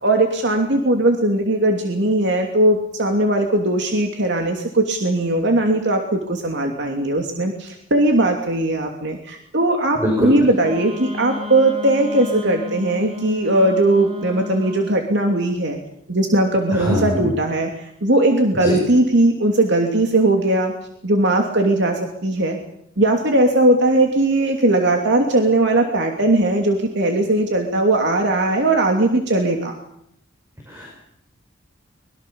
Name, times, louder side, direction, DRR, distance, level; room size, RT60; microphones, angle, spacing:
voice 1, 0.0-15.8 16.1-20.7 21.0-22.6 23.0-29.8, right 1 dB, 60° right, 3 dB, 2.9 m, -19 dB
voice 2, 10.0-10.3 16.7-17.3 18.6-18.8 30.7-30.9, equal, 15° right, 0 dB, 5.8 m, -22 dB
Wind instrument woodwind instrument, 10.6-15.0, left 4 dB, 30° right, 3.1 m, -33 dB
24.5 x 22.5 x 7.0 m, 0.73 s
head